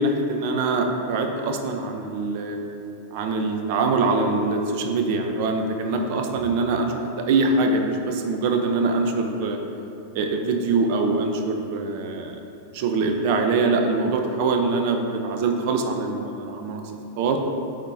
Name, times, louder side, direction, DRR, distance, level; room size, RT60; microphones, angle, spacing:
voice 1, 0.0-2.6 3.1-9.6 10.1-12.4 12.7-16.8 17.2-17.4, right 3 dB, 55° right, 4 dB, 0.7 m, -23 dB
8.8 x 3.9 x 3.4 m, 2.8 s
hypercardioid pair, 120°, 0 cm